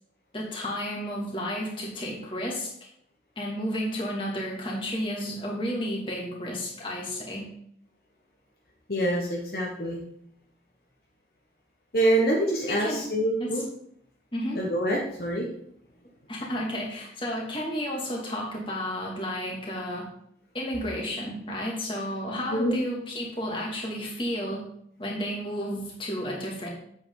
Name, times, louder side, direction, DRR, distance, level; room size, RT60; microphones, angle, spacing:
voice 1, 0.3-2.7 3.4-7.5 12.7-13.1 13.4-13.6 14.3-14.6 16.3-20.1 20.5-24.6 25.0-26.7, equal, 30° left, -2 dB, 2.4 m, -32 dB
voice 2, 8.9-10.0 11.9-13.6 14.5-15.5 22.5-22.8, right 1 dB, 55° left, -3 dB, 1.4 m, -25 dB
8.2 x 8.2 x 3.9 m, 0.70 s
head